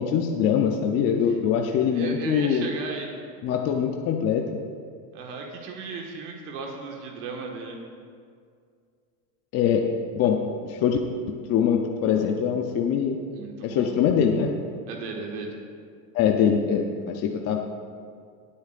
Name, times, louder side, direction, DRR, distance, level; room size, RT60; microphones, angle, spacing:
voice 1, 0.0-2.7 3.4-4.4 9.5-9.8 10.1-10.4 10.6-11.0 11.5-13.2 13.6-14.5 16.1-17.6, left 8 dB, 35° left, 2 dB, 0.6 m, -23 dB
voice 2, 1.9-3.1 5.1-7.8 13.3-13.9 14.9-15.5, right 4 dB, 65° right, 1 dB, 1.7 m, -35 dB
19.0 x 8.6 x 2.5 m, 2.2 s
supercardioid pair, 130°, 48 cm